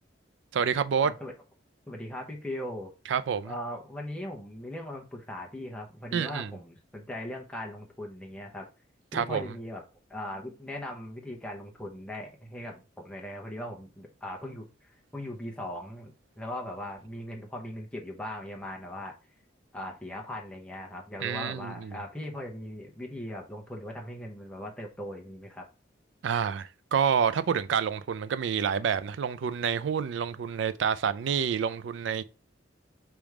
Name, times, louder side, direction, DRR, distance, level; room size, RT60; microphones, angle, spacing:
voice 1, 0.5-1.1 3.1-3.5 6.1-6.5 9.1-9.5 21.2-22.0 26.2-32.2, right 7 dB, 75° right, 0.4 m, -28 dB
voice 2, 1.0-1.3 1.9-2.9 3.4-8.7 9.1-9.8 10.1-19.1 19.7-25.7, left 1 dB, 5° left, 0.8 m, -39 dB
3.4 x 3.0 x 4.8 m
head